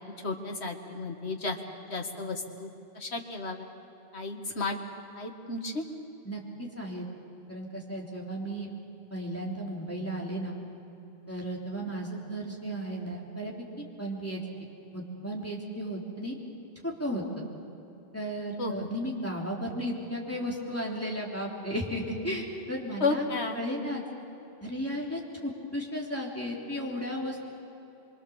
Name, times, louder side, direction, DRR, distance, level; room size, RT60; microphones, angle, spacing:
voice 1, 0.0-2.7 3.0-3.7 4.1-4.8 5.2-5.8 18.6-18.9 23.0-23.6, left 3 dB, 85° left, 3 dB, 2.0 m, -33 dB
voice 2, 6.2-7.1 7.5-8.7 9.1-10.6 11.3-14.4 14.9-16.3 16.8-17.4 18.1-23.2 23.6-24.0 24.6-27.4, equal, 15° left, -3 dB, 3.3 m, -34 dB
25.0 x 23.0 x 7.1 m, 2.9 s
omnidirectional pair, 1.1 m